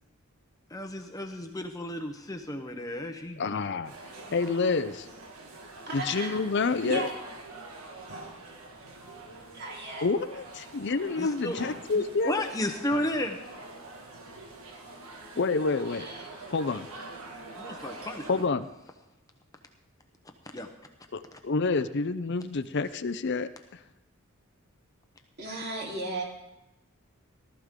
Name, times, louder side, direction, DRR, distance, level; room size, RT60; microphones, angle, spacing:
voice 1, 0.7-3.7 11.2-11.6 11.9-13.4 17.6-18.3 20.5-20.7 21.3-21.4, left 1 dB, 15° left, 4 dB, 0.9 m, -33 dB
voice 2, 3.4-3.9 4.3-5.1 5.9-7.1 10.0-12.4 15.4-16.1 16.5-16.9 18.3-18.7 21.1-23.5, left 4 dB, 55° left, 11 dB, 0.5 m, -28 dB
sound 1, 3.8-18.5, right 2 dB, 85° right, 1.9 m, -45 dB
voice 3, 5.9-6.4 6.8-7.2 9.5-10.1 15.9-16.3 25.4-26.2, right 2 dB, 50° right, -2 dB, 3.5 m, -35 dB
18.5 x 13.0 x 3.7 m, 0.95 s
head